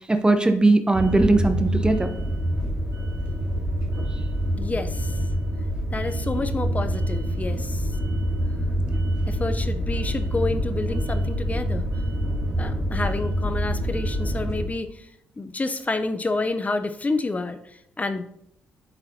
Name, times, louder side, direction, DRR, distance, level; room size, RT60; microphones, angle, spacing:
voice 1, 0.1-2.1, right 2 dB, 15° right, 8 dB, 0.9 m, -19 dB
sound 1, 0.9-14.6, equal, 60° right, 2.1 m, -26 dB
voice 2, 4.6-5.1 5.9-7.9 9.3-11.9 12.6-15.1 15.4-18.2, left 3 dB, 25° left, 10 dB, 0.6 m, -29 dB
11.0 x 4.1 x 2.8 m, 0.76 s
hypercardioid pair, 50°, 5 cm